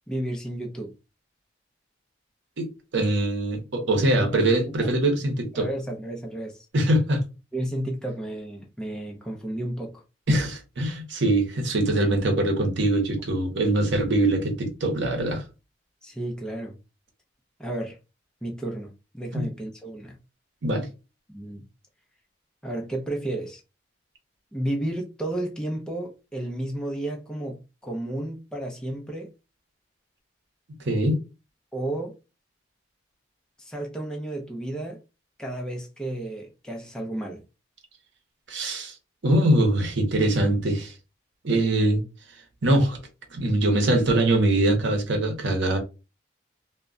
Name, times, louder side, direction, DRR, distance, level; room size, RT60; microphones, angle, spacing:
voice 1, 0.1-0.9 4.2-4.9 5.5-6.7 7.5-10.0 16.0-16.8 17.6-18.0 18.4-20.2 21.3-21.6 22.6-23.6 24.5-29.3 31.7-32.1 33.6-35.0 35.4-37.4, right 1 dB, 5° left, 0.5 m, -32 dB
voice 2, 2.6-5.7 6.7-7.2 10.3-15.4 19.3-19.5 20.6-20.9 30.8-31.2 38.5-39.0 39.2-40.9 41.4-42.0 42.6-43.0 43.3-45.8, right 1 dB, 70° right, 0.8 m, -23 dB
2.1 x 2.1 x 3.6 m
head